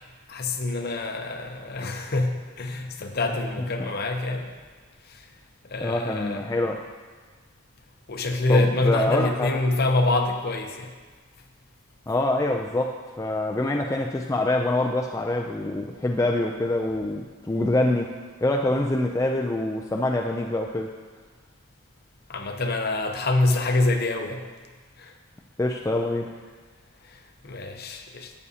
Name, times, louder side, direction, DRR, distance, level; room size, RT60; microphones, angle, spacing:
voice 1, 0.3-4.5 5.1-5.3 5.6-6.4 8.1-10.9 22.3-24.5 25.0-25.1 27.1-28.3, left 2 dB, 45° left, 5 dB, 0.8 m, -26 dB
voice 2, 3.3-3.9 5.8-6.9 8.5-9.5 12.1-18.1 18.4-20.9 25.6-26.3, left 1 dB, 15° left, 1 dB, 0.3 m, -25 dB
12.0 x 8.4 x 2.8 m, 1.4 s
head